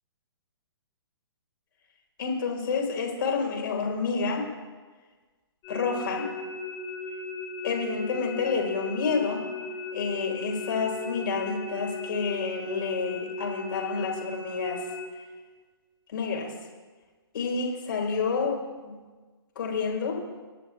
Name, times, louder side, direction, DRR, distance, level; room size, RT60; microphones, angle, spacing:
voice 1, 2.2-4.5 5.7-6.3 7.6-9.4 9.9-14.8 16.1-16.5 17.3-19.0 19.6-20.2, left 5 dB, 55° left, 0 dB, 4.0 m, -29 dB
sound 1, 5.6-15.1, left 3 dB, 25° left, 2.9 m, -37 dB
28.5 x 11.0 x 2.4 m, 1.4 s
figure-of-eight pair, 125°, 14 cm